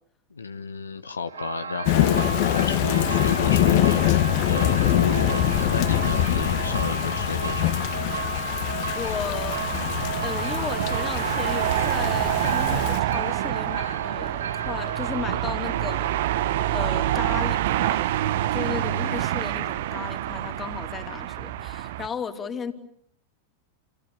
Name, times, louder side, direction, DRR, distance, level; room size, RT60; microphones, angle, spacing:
voice 1, 0.3-8.0 18.8-19.2, left 4 dB, 75° left, 1.3 m, -32 dB
sound 1, 1.3-17.7, right 6 dB, 70° right, 7.6 m, -33 dB
Thunder / Rain, 1.9-13.0, left 13 dB, 45° left, 1.8 m, -24 dB
voice 2, 8.9-9.7 10.2-16.1 16.7-18.0 18.5-22.7, left 6 dB, 20° left, 3.1 m, -35 dB
sound 2, 9.4-22.1, right 13 dB, 55° right, 1.1 m, -27 dB
30.0 x 27.5 x 7.0 m
figure-of-eight pair, 90°, 0 cm